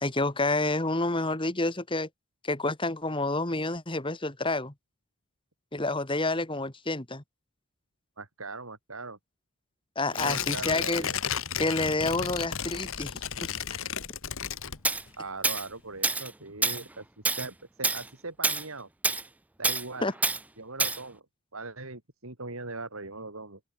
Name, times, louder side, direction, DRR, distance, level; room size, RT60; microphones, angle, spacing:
voice 1, 0.0-2.1 2.4-4.7 5.7-7.2 10.0-11.1 11.6-13.8 20.0-20.1, left 2 dB, 20° left, 2.0 m, -29 dB
voice 2, 8.2-9.2 10.1-11.2 15.2-18.9 19.6-20.1 20.6-21.2 21.5-23.6, right 3 dB, 70° right, 3.5 m, -40 dB
Tearing, 10.1-15.2 15.6-15.7, left 8 dB, 65° left, 1.7 m, -33 dB
Tools, 14.8-15.0 15.4-15.7 16.0-16.3 16.6-16.8 17.3-17.5 17.8-18.0 18.4-18.6 19.0-19.2 19.6-19.8 20.2-20.4 20.8-21.0, right 3 dB, 5° right, 0.4 m, -26 dB
open air
head